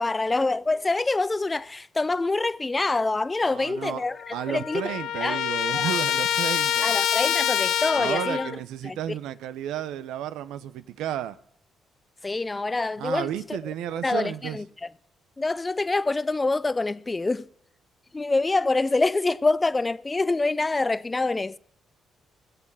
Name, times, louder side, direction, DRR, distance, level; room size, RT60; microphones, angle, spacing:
voice 1, 0.0-4.8 5.2-5.4 5.7-5.9 6.8-8.5 8.8-9.0 12.2-13.3 14.0-14.6 15.4-17.5 18.1-21.6, left 3 dB, 20° left, 0.4 m, -25 dB
voice 2, 3.4-4.0 4.3-6.9 7.9-11.4 13.0-14.6, right 11 dB, 90° right, 0.6 m, -32 dB
Trumpet, 3.8-3.9 4.1-8.6, left 11 dB, 80° left, 0.6 m, -26 dB
17.0 x 6.9 x 7.3 m
cardioid pair, 90°, 0 cm